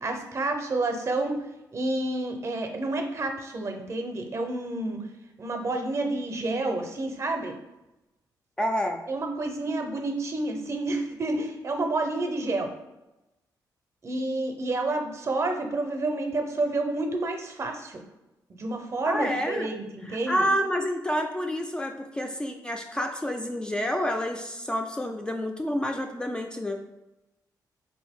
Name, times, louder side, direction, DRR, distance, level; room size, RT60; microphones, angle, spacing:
voice 1, 0.0-1.4 1.7-5.0 5.4-7.5 9.1-12.7 14.0-18.0 18.6-20.5, right 2 dB, 40° right, 4 dB, 0.6 m, -29 dB
voice 2, 8.6-9.0 19.0-19.7 20.1-26.8, equal, 10° left, 3 dB, 0.3 m, -29 dB
3.9 x 2.6 x 3.5 m, 0.98 s
cardioid pair, 110°, 7 cm